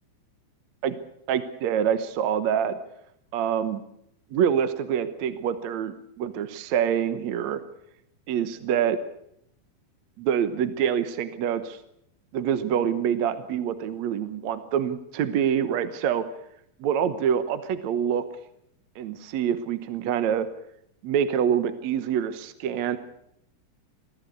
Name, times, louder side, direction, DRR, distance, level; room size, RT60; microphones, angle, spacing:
voice 1, 1.3-2.8 3.3-3.8 4.3-7.6 8.3-9.0 10.2-11.8 12.3-16.2 16.8-18.2 19.0-20.5 21.0-23.0, right 8 dB, 65° right, 11 dB, 2.1 m, -26 dB
22.5 x 15.0 x 8.4 m, 0.75 s
omnidirectional pair, 4.0 m